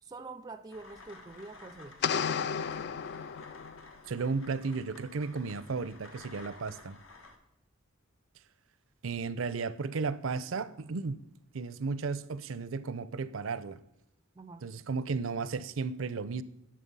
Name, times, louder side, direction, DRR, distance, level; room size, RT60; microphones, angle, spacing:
voice 1, 0.0-2.0 14.4-14.7, right 3 dB, 20° right, 0.3 m, -46 dB
sound 1, 0.7-7.4, left 3 dB, 80° left, 1.5 m, -53 dB
sound 2, 2.0-3.9, left 7 dB, 55° left, 0.3 m, -33 dB
voice 2, 4.1-7.0 9.0-11.2 11.5-13.8 14.6-16.4, right 4 dB, 80° right, 0.5 m, -34 dB
11.0 x 6.5 x 5.4 m
head